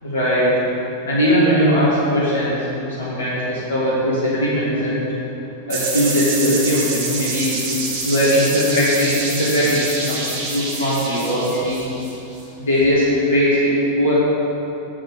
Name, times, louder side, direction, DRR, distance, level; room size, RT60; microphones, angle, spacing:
voice 1, 0.0-0.5 1.0-5.0 5.7-7.6 8.0-11.8 12.6-13.7 14.0-14.1, equal, 65° left, -9 dB, 1.8 m, -19 dB
sound 1, 5.7-12.4, right 3 dB, 50° right, 1.3 m, -27 dB
7.0 x 6.0 x 4.8 m, 3.0 s
figure-of-eight pair, 90°, 0 cm